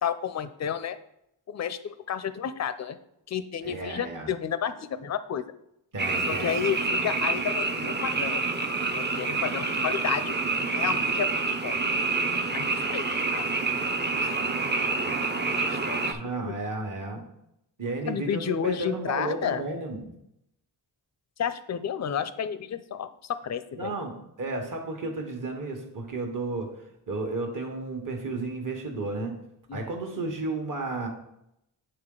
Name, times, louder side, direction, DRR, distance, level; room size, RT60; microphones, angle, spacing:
voice 1, 0.0-1.0 1.5-3.0 3.3-5.4 6.3-8.4 8.9-10.3 10.7-11.8 12.5-13.0 13.3-13.5 14.2-14.3 15.7-16.5 18.1-19.6 21.4-24.0 29.7-29.9, left 8 dB, 40° left, 13 dB, 0.5 m, -31 dB
voice 2, 3.6-4.3 5.9-6.6 16.1-17.2 17.8-20.1 23.8-26.7 27.1-29.4 29.7-31.1, right 2 dB, 45° right, 1 dB, 1.3 m, -33 dB
Frog, 6.0-16.1, right 3 dB, 25° right, 0.6 m, -27 dB
8.8 x 3.9 x 3.8 m, 0.79 s
wide cardioid pair, 70°, 46 cm